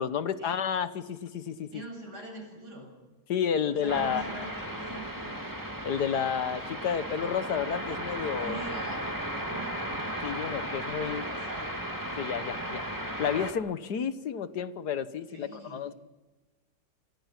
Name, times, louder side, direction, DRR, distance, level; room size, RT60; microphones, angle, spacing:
voice 1, 0.0-1.8 3.3-4.3 5.8-8.6 10.2-11.3 12.2-12.9 13.2-15.9, left 7 dB, 75° left, 13 dB, 1.7 m, -31 dB
voice 2, 1.7-2.9 3.6-5.4 8.4-9.8 11.1-11.7 15.3-15.8, right 1 dB, 75° right, 2 dB, 8.8 m, -43 dB
sound 1, 3.9-13.5, right 1 dB, 10° right, 2.5 m, -35 dB
28.5 x 27.0 x 6.0 m, 1.2 s
omnidirectional pair, 1.8 m